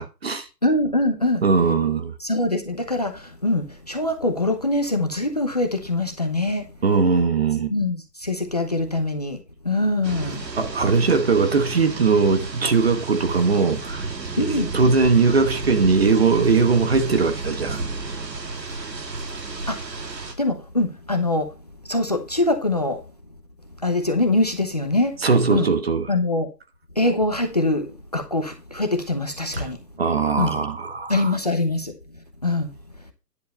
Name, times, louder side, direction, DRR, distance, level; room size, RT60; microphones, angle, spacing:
voice 1, 0.0-0.5 1.4-2.1 6.8-7.7 10.6-14.1 14.4-17.8 25.2-26.1 29.5-29.7 30.0-31.4, right 4 dB, 40° right, 1.1 m, -20 dB
voice 2, 0.6-1.5 2.2-6.7 7.7-10.5 14.4-14.8 19.7-20.0 20.4-21.5 21.8-23.0 23.8-25.2 25.5-25.7 26.1-26.5 27.0-29.8 30.4-30.5 31.1-32.0 32.4-32.7, left 2 dB, 25° left, 0.8 m, -23 dB
sound 1, 10.0-20.3, right 3 dB, 80° right, 2.8 m, -32 dB
10.5 x 7.3 x 4.1 m
hypercardioid pair, 170°, 49 cm